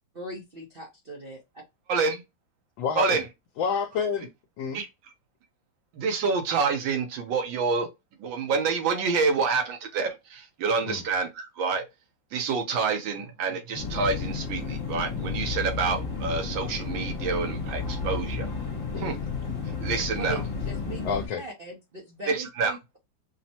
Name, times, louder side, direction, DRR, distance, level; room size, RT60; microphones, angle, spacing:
voice 1, 0.2-1.4 20.2-21.0 21.4-23.0, right 3 dB, 60° right, 0.6 m, -39 dB
voice 2, 1.9-2.2 3.0-3.2 4.7-4.9 5.9-7.9 8.2-11.8 12.3-18.5 19.0-19.2 19.8-20.4 22.3-22.8, right 4 dB, 80° right, 1.6 m, -27 dB
voice 3, 2.8-3.2 3.6-4.3 4.6-4.8 10.8-11.0 18.9-19.2 21.0-21.4, left 6 dB, 75° left, 1.3 m, -29 dB
sound 1, 13.7-21.3, left 5 dB, 35° left, 1.0 m, -32 dB
5.6 x 2.1 x 2.8 m
omnidirectional pair, 2.1 m